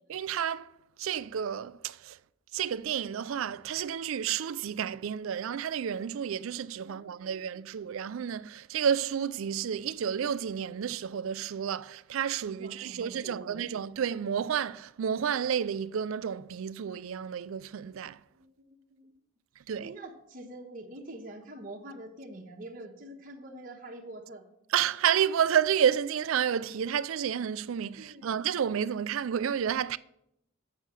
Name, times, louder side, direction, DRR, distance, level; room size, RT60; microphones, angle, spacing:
voice 1, 0.1-0.7 1.0-2.2 2.5-18.2 19.7-19.9 24.7-30.0, right 8 dB, 75° right, 0.4 m, -30 dB
voice 2, 6.8-7.9 12.6-13.6 18.3-19.1 19.8-24.4 28.0-28.4, right 1 dB, 40° right, 1.2 m, -46 dB
7.3 x 6.6 x 7.4 m
head